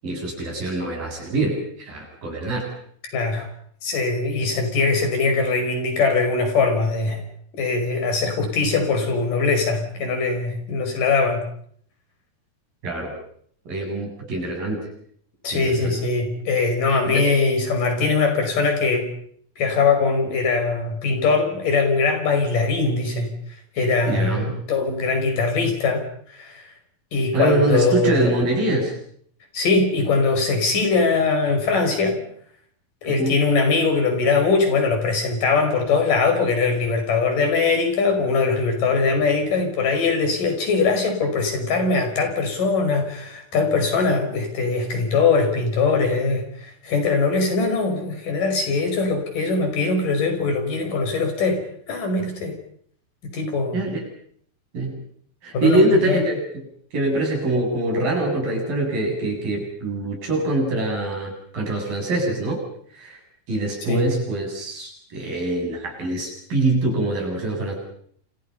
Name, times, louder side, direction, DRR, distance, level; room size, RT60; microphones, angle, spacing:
voice 1, 0.0-2.7 12.8-13.1 13.7-14.9 15.5-16.0 16.9-17.3 24.1-24.5 27.3-28.9 33.1-33.4 53.7-54.0 54.7-55.0 55.4-56.7 56.9-62.6 62.9-63.2 63.5-67.8, right 2 dB, 70° right, 1 dB, 9.9 m, -24 dB
voice 2, 3.1-3.5 3.8-7.2 7.6-11.4 15.4-19.1 19.6-23.3 23.8-26.0 26.3-26.6 27.1-28.2 29.5-32.2 33.0-51.6 51.9-52.5 53.3-53.8 55.5-56.2 63.9-64.1, left 4 dB, 65° left, 5 dB, 7.1 m, -21 dB
28.5 x 28.5 x 5.6 m, 0.63 s
omnidirectional pair, 4.2 m